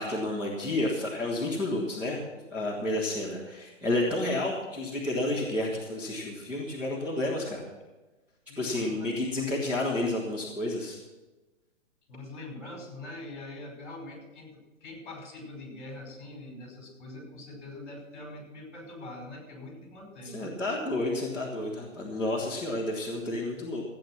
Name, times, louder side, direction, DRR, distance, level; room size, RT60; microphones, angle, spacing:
voice 1, 0.0-2.2 2.5-7.6 8.6-11.0 20.3-23.8, left 1 dB, 5° right, -9 dB, 1.6 m, -30 dB
voice 2, 8.5-9.1 12.1-20.5, left 2 dB, 40° left, 1 dB, 5.4 m, -43 dB
15.5 x 9.1 x 5.9 m, 1.1 s
hypercardioid pair, 175°, 39 cm